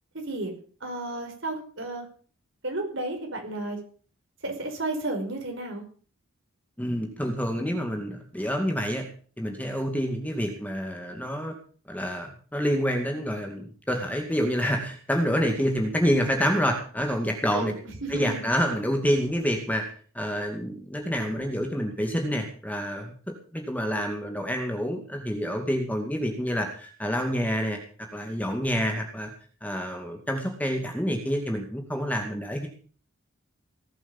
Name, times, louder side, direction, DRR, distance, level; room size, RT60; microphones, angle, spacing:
voice 1, 0.1-0.5 0.8-2.1 2.6-3.8 4.4-5.8 17.5-17.7 18.0-18.5, right 2 dB, 55° right, 3 dB, 5.3 m, -32 dB
voice 2, 6.8-9.0 9.4-11.5 11.9-17.7 18.1-29.3 29.6-32.7, equal, 5° left, 3 dB, 2.3 m, -28 dB
18.5 x 8.4 x 7.2 m, 0.43 s
head